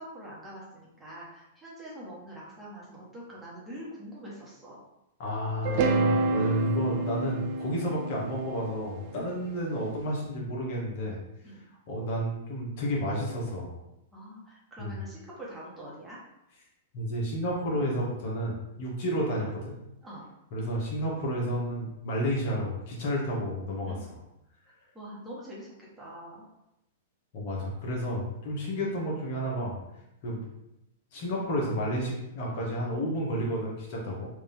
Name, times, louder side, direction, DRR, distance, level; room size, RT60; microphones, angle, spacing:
voice 1, 0.0-4.8 9.1-9.4 11.4-11.7 14.1-16.2 20.0-20.2 23.9-24.1 24.9-26.5, right 1 dB, 10° right, -6 dB, 1.2 m, -44 dB
voice 2, 5.2-11.2 11.9-13.7 14.8-15.0 16.9-19.8 20.5-24.2 27.3-29.8 30.2-30.5 31.1-34.3, equal, 55° left, -3 dB, 1.3 m, -31 dB
sound 1, 5.6-9.8, right 3 dB, 50° right, 0.4 m, -29 dB
3.5 x 2.7 x 3.5 m, 0.87 s
hypercardioid pair, 125°, 0 cm